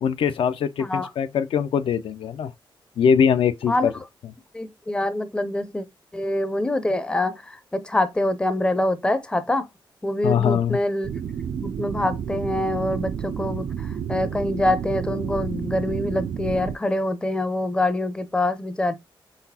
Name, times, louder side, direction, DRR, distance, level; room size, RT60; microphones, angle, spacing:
voice 1, 0.0-2.5 3.0-3.9 10.2-10.8, left 7 dB, 75° left, 0.4 m, -22 dB
voice 2, 0.8-1.1 3.7-3.9 4.5-5.9 6.1-9.7 10.0-11.1 11.6-18.9, left 1 dB, 10° left, 0.5 m, -25 dB
sound 1, 11.0-16.8, right 8 dB, 65° right, 0.3 m, -30 dB
4.0 x 4.0 x 2.7 m
cardioid pair, 105°, 9 cm